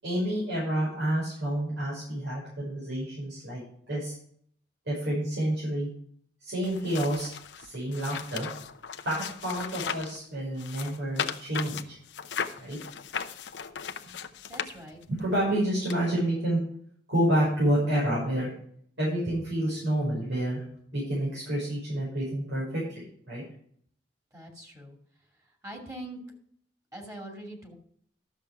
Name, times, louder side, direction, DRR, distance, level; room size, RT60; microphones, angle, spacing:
voice 1, 0.0-4.1 4.9-5.9 6.4-7.3 7.6-8.5 9.0-11.9 12.6-12.8 15.1-16.6 17.1-18.5 19.0-20.6 20.9-22.8 23.3-23.4, right 1 dB, 85° right, -7 dB, 5.8 m, -29 dB
sound 1, 6.6-10.2 10.6-15.2 15.9-16.0, left 7 dB, 85° left, 0.7 m, -37 dB
voice 2, 14.5-15.0 24.3-25.0 25.6-26.2 26.9-27.7, right 1 dB, 20° right, 1 dB, 2.4 m, -42 dB
12.0 x 7.1 x 4.8 m, 0.62 s
head